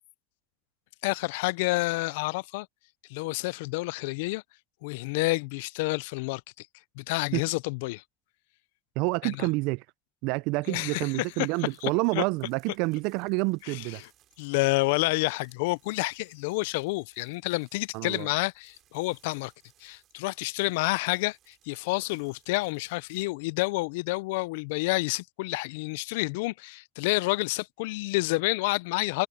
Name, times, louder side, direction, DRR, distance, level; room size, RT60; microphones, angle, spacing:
voice 1, 1.0-2.7 3.1-4.4 4.8-6.7 7.0-8.0 9.2-9.5 10.7-11.1 11.4-11.5 11.8-12.2 13.7-13.9 14.4-19.5 19.8-29.3, left 23 dB, 85° left, 0.4 m, -29 dB
voice 2, 9.0-9.8 10.2-14.0 17.9-18.3, right 26 dB, 80° right, 0.4 m, -28 dB
sound 1, 10.8-24.7, right 12 dB, 65° right, 5.2 m, -66 dB
hypercardioid pair, 65°, 0 cm